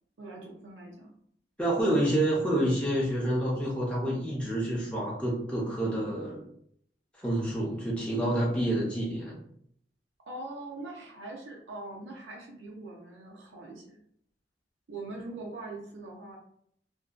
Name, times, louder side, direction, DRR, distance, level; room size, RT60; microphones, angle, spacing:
voice 1, 0.2-1.1 10.3-14.0 14.9-16.4, right 2 dB, 90° right, -1 dB, 0.5 m, -42 dB
voice 2, 1.6-6.4 7.2-9.4, right 1 dB, 5° left, -5 dB, 0.4 m, -28 dB
2.5 x 2.1 x 2.3 m, 0.68 s
head